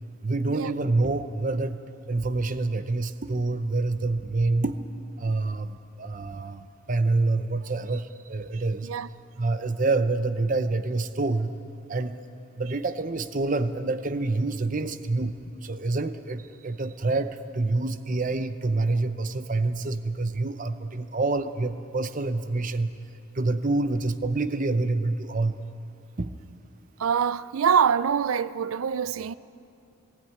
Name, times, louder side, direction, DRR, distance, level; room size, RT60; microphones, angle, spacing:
voice 1, 0.2-1.8 2.1-4.8 5.2-8.9 9.4-11.5 11.9-12.3 12.6-22.9 23.3-25.6 26.2-26.3, right 3 dB, 40° right, 0.7 m, -27 dB
voice 2, 27.0-29.4, right 7 dB, 85° right, 0.4 m, -24 dB
19.0 x 16.0 x 9.5 m
head